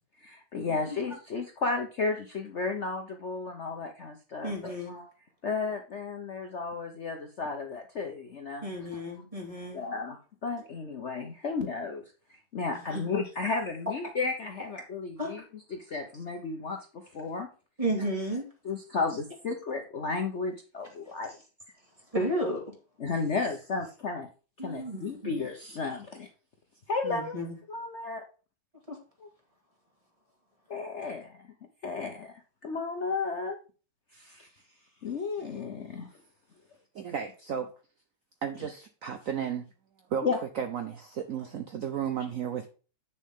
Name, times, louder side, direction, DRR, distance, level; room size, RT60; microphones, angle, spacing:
voice 1, 0.2-5.1 5.4-8.6 8.9-9.0 9.7-12.0 12.5-15.4 15.7-16.8 17.1-17.5 18.6-21.3 23.0-24.3 24.6-26.3 26.9-27.4 27.7-28.2 29.2-29.3 30.7-31.3 31.8-32.3 32.6-33.6 34.1-34.5 35.0-36.1 40.2-40.4, left 4 dB, 50° left, 0.9 m, -33 dB
voice 2, 4.4-5.0 8.6-9.9 12.7-13.0 15.2-15.3 17.8-18.5 22.1-22.7 24.6-25.3 27.0-27.6 28.9-29.0, right 1 dB, 20° right, 2.4 m, -33 dB
voice 3, 36.9-37.7 38.4-39.7 40.1-42.7, right 8 dB, 60° right, 1.0 m, -34 dB
8.5 x 6.8 x 3.7 m
omnidirectional pair, 2.0 m